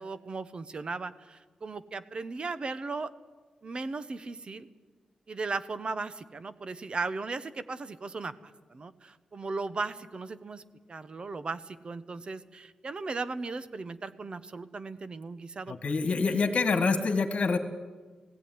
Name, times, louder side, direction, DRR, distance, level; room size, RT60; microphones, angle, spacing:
voice 1, 0.0-3.1 3.6-4.7 5.3-10.6 10.9-16.1, right 3 dB, 40° right, 13 dB, 0.9 m, -37 dB
voice 2, 15.7-17.6, left 4 dB, 55° left, 8 dB, 2.0 m, -26 dB
18.0 x 16.5 x 9.6 m, 1.4 s
wide cardioid pair, 150°, 3 cm